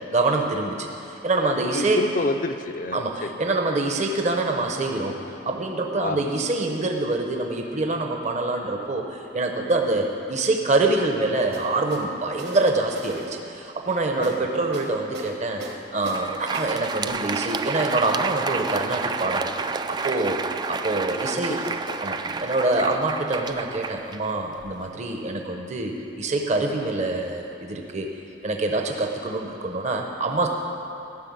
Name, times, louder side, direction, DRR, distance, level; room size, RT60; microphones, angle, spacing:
voice 1, 0.1-0.9 1.2-2.0 2.9-5.2 5.4-15.6 15.9-19.5 19.9-20.4 20.7-21.6 22.0-28.1 28.4-30.5, right 2 dB, 40° right, 3 dB, 0.8 m, -25 dB
voice 2, 1.6-3.3 6.0-6.2 14.1-14.6 21.3-22.0, left 2 dB, 50° left, 9 dB, 0.6 m, -29 dB
sound 1, 11.5-12.1 12.4-13.3 14.2-14.4 14.7-15.3 15.6-16.3 16.5-16.7 17.0-17.1, right 2 dB, 65° right, 1.6 m, -39 dB
Crowd, 15.9-24.9, right 4 dB, 25° right, 0.3 m, -30 dB
14.5 x 6.6 x 9.4 m, 2.9 s
head